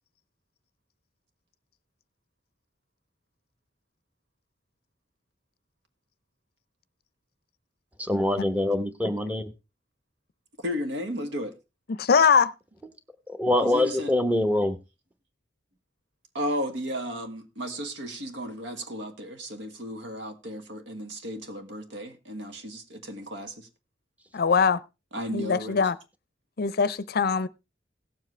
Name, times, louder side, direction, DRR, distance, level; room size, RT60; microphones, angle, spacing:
voice 1, 8.0-9.4 13.3-14.7, left 1 dB, 10° right, 0.9 m, -24 dB
voice 2, 10.6-11.5 13.6-14.2 16.3-23.7 25.1-25.9, equal, 80° right, 1.6 m, -34 dB
voice 3, 11.9-12.5 24.3-24.8 25.3-26.0 26.6-27.5, left 5 dB, 55° left, 0.5 m, -22 dB
17.5 x 7.4 x 3.2 m
head